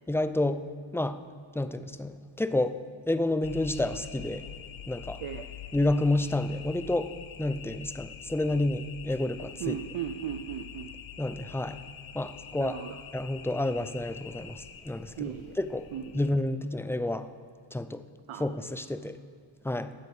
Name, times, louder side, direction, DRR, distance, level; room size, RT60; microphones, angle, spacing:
voice 1, 0.1-0.6 0.9-1.2 1.5-2.7 3.1-4.5 4.9-5.2 5.7-7.1 7.4-9.7 11.2-11.8 12.1-12.8 13.1-15.9 16.1-17.3 17.7-18.0 18.4-19.2 19.6-19.9, left 1 dB, 5° left, 11 dB, 0.5 m, -29 dB
sound 1, 3.4-16.3, left 8 dB, 75° left, 0.8 m, -45 dB
voice 2, 9.6-10.9 12.6-13.0 15.2-15.5 15.9-16.2 18.3-18.4, right 10 dB, 90° right, 7 dB, 0.7 m, -36 dB
16.0 x 9.1 x 4.9 m, 2.1 s
cardioid pair, 85°, 47 cm